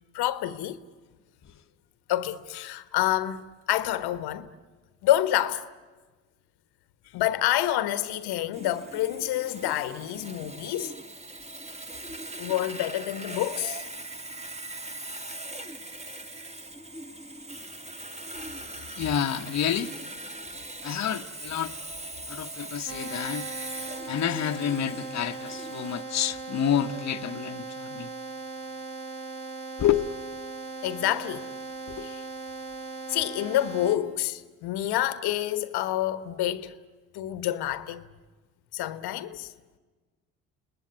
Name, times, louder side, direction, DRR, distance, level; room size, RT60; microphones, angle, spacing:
voice 1, 0.1-0.8 2.1-4.5 5.0-5.7 7.1-10.9 12.4-13.8 18.4-18.5 30.8-31.5 32.0-32.2 33.1-36.7 37.1-38.0 38.7-39.5, left 13 dB, 65° left, 1.3 m, -28 dB
Sawing, 8.5-26.0, right 1 dB, 15° right, 2.0 m, -40 dB
voice 2, 19.0-19.9 20.8-21.7 22.3-23.5 24.1-28.1 29.8-30.2 31.9-32.1, left 9 dB, 40° left, 1.1 m, -28 dB
sound 1, 22.9-34.0, right 4 dB, 35° right, 4.7 m, -39 dB
30.0 x 19.0 x 9.5 m
hypercardioid pair, 55°, 41 cm